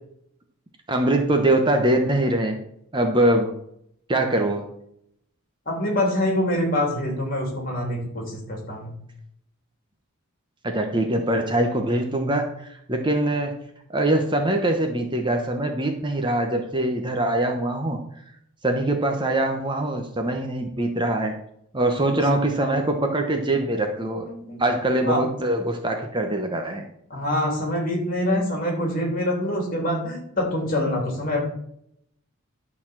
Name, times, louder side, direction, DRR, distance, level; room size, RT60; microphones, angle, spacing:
voice 1, 0.9-2.6 2.9-3.5 4.1-4.6 10.6-13.5 13.9-18.0 18.6-21.4 21.7-24.2 24.6-26.9, right 1 dB, 20° right, 4 dB, 0.9 m, -23 dB
voice 2, 5.7-8.9 24.2-24.6 25.0-25.2 27.1-31.5, left 1 dB, 40° left, 1 dB, 3.1 m, -25 dB
11.5 x 4.1 x 7.3 m, 0.73 s
head